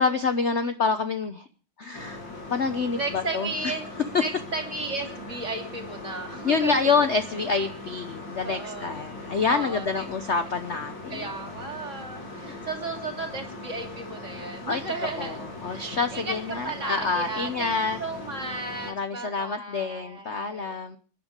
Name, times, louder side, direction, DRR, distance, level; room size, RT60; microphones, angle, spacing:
voice 1, 0.0-1.5 1.8-3.5 6.4-11.3 12.5-12.7 14.7-18.0 18.9-21.0, left 4 dB, 45° left, 9 dB, 0.9 m, -27 dB
sound 1, 1.9-18.9, left 2 dB, 65° left, 4.0 m, -40 dB
voice 2, 2.9-3.8 4.2-7.0 8.4-9.1 9.5-10.0 11.1-16.3 16.6-20.8, right 3 dB, 35° right, 4 dB, 3.3 m, -34 dB
25.0 x 10.5 x 5.1 m, 0.38 s
omnidirectional pair, 2.2 m